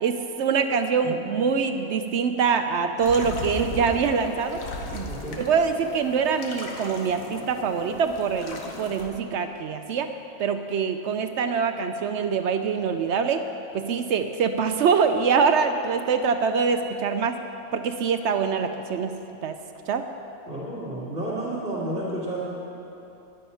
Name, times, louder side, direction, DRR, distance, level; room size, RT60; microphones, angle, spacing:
voice 1, 0.0-4.6 4.9-10.1 10.4-13.5 13.7-17.4 17.7-19.2 19.4-19.5 19.9-20.0, right 6 dB, 65° right, 7 dB, 0.7 m, -24 dB
sound 1, 3.0-9.1, left 2 dB, 60° left, 1.5 m, -37 dB
voice 2, 5.1-5.4 20.5-22.4, right 1 dB, 35° right, -12 dB, 2.5 m, -31 dB
11.0 x 9.9 x 5.6 m, 3.0 s
omnidirectional pair, 1.6 m